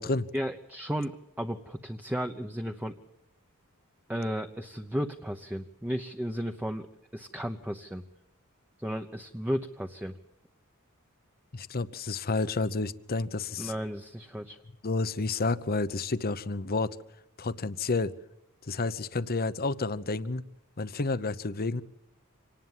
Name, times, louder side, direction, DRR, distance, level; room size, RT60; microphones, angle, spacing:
voice 1, 0.3-3.0 4.1-6.9 7.1-8.0 8.8-10.1 13.6-14.6, equal, 10° right, 5 dB, 0.9 m, -34 dB
voice 2, 11.5-13.7 14.8-17.0 17.4-18.1 18.6-20.4 20.8-21.8, left 3 dB, 45° left, 15 dB, 0.9 m, -30 dB
26.0 x 19.0 x 7.5 m, 0.83 s
head